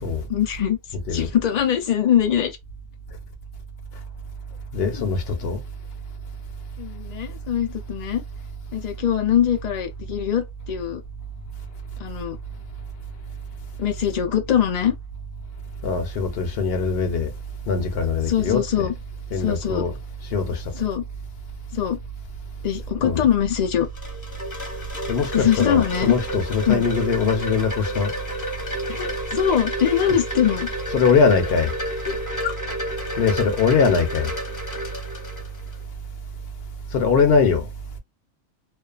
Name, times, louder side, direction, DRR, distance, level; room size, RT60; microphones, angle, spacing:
voice 1, 0.3-0.8 1.1-2.6 4.9-5.0 6.8-8.2 8.7-11.0 12.0-12.4 13.8-14.9 18.3-18.9 19.3-19.8 20.7-21.0 21.7-22.0 22.6-23.9 25.3-26.1 26.7-26.9 28.9-30.7 32.1-32.2 32.4-32.5, left 9 dB, 85° left, 0.3 m, -22 dB
voice 2, 4.7-5.6 15.8-17.3 17.7-18.9 19.3-19.9 20.3-20.6 23.0-23.2 25.1-28.1 30.9-31.7 33.2-34.3 36.9-37.7, left 5 dB, 60° left, 0.7 m, -21 dB
Wind chime, 23.5-35.8, equal, 20° left, 0.7 m, -31 dB
2.5 x 2.2 x 2.3 m
omnidirectional pair, 1.3 m